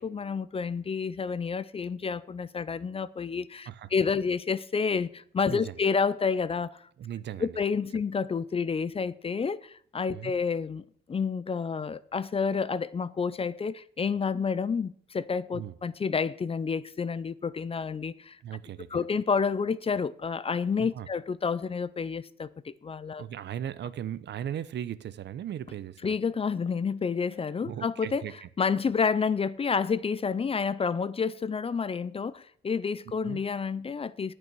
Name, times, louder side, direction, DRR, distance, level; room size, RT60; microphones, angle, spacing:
voice 1, 0.0-6.8 7.4-18.4 18.9-23.2 26.0-28.3 28.6-34.3, left 5 dB, 30° left, 0.5 m, -29 dB
voice 2, 7.0-7.6 10.1-10.3 15.5-15.8 18.4-19.0 20.8-21.1 23.2-26.1 27.6-28.5 33.2-33.4, right 10 dB, 60° right, 0.8 m, -37 dB
9.3 x 8.7 x 6.2 m
cardioid pair, 90°, 20 cm